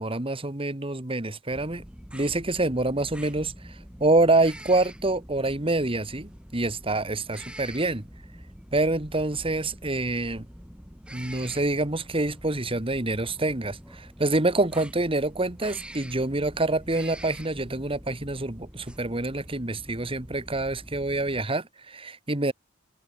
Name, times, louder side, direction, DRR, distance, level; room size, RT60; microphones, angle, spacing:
voice 1, 0.0-1.8 2.1-8.0 8.7-10.5 11.1-22.5, right 2 dB, 25° right, 1.9 m, -26 dB
sound 1, 1.5-21.4, equal, 5° right, 3.3 m, -45 dB
head